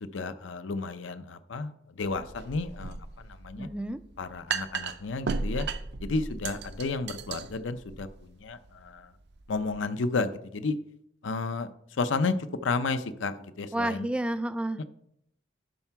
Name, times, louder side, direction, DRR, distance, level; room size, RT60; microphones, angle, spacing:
voice 1, 0.0-3.7 4.2-5.7 6.0-9.1 9.5-10.8 11.2-11.7 12.0-12.3 12.6-14.1, left 3 dB, 80° left, 11 dB, 0.6 m, -32 dB
sound 1, 2.0-9.8, right 4 dB, 60° right, 0.5 m, -36 dB
voice 2, 3.6-4.0 13.7-14.8, right 1 dB, 5° right, 12 dB, 0.3 m, -30 dB
11.5 x 4.5 x 4.6 m, 0.75 s
head